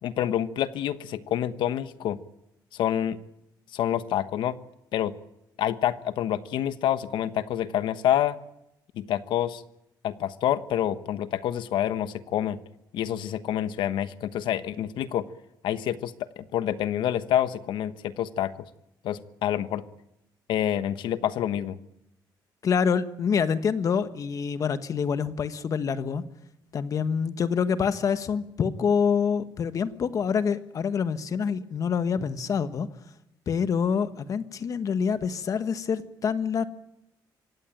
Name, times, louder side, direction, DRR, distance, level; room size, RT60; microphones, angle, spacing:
voice 1, 0.0-2.2 2.7-3.2 3.7-4.6 4.9-5.1 5.6-8.4 9.0-9.6 10.0-12.6 12.9-15.3 15.6-18.5 19.0-19.8 20.5-21.8, left 11 dB, 85° left, 13 dB, 1.2 m, -27 dB
voice 2, 22.6-26.2 26.7-32.9 33.5-36.7, left 6 dB, 45° left, 11 dB, 1.3 m, -26 dB
25.5 x 16.5 x 9.1 m, 0.85 s
cardioid pair, 140°, 8 cm